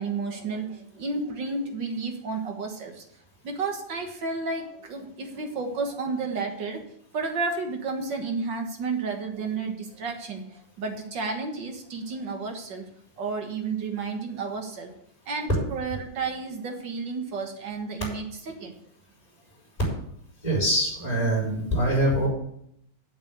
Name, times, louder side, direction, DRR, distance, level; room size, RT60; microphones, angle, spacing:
voice 1, 0.0-3.0 3.4-6.8 7.1-10.4 10.8-12.8 13.2-14.9 15.3-18.7, right 4 dB, 55° right, 4 dB, 1.3 m, -31 dB
voice 2, 20.4-22.3, right 1 dB, 10° left, -5 dB, 4.9 m, -24 dB
8.1 x 7.5 x 7.9 m, 0.72 s
omnidirectional pair, 3.7 m